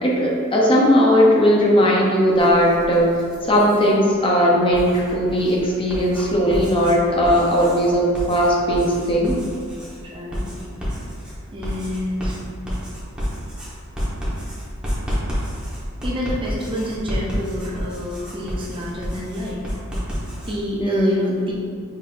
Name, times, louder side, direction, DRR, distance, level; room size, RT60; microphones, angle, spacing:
voice 1, 0.0-3.2 3.4-9.3 20.8-21.4, equal, 25° left, -3 dB, 0.7 m, -18 dB
Writing, 2.3-3.9 4.5-20.5, equal, 5° right, 1.1 m, -30 dB
voice 2, 10.0-10.5 11.5-12.4 13.1-13.2 16.0-19.6 20.5-21.4, left 1 dB, 25° right, -3 dB, 0.6 m, -28 dB
5.4 x 3.9 x 2.5 m, 2.1 s
head